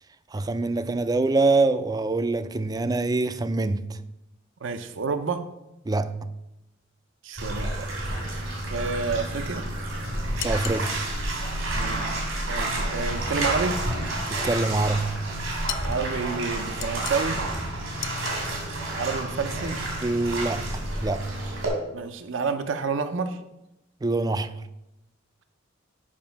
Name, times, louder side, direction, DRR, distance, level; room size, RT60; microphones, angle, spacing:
voice 1, 0.3-4.0 5.9-6.2 10.4-10.9 14.3-15.1 20.0-21.2 24.0-24.6, right 3 dB, 20° right, 0.4 m, -25 dB
voice 2, 4.6-5.4 7.2-7.9 8.7-9.6 11.8-12.1 12.5-13.8 15.8-17.4 18.9-19.8 21.9-23.4, right 4 dB, 65° right, 0.6 m, -29 dB
Bathtub (filling or washing), 7.4-21.7, right 1 dB, 90° right, 2.8 m, -30 dB
sound 1, 10.4-10.9 15.7-16.0 16.8-17.4 18.0-18.5, left 11 dB, 65° left, 0.5 m, -35 dB
7.4 x 5.2 x 5.7 m
head